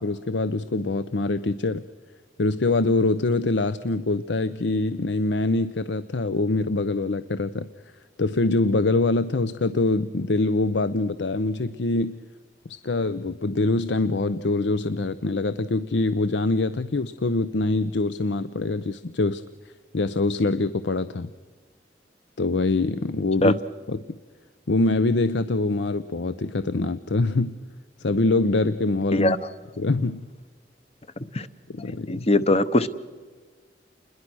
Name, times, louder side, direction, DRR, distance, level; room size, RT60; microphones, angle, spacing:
voice 1, 0.0-1.8 2.4-7.7 8.2-12.2 12.7-19.4 19.9-21.3 22.4-23.6 23.9-24.0 24.7-27.6 28.0-29.3 29.8-30.3 31.7-32.3, left 2 dB, 70° left, 14 dB, 0.7 m, -24 dB
voice 2, 32.1-32.9, left 1 dB, 35° left, 13 dB, 0.9 m, -20 dB
29.0 x 21.5 x 6.3 m, 1.5 s
head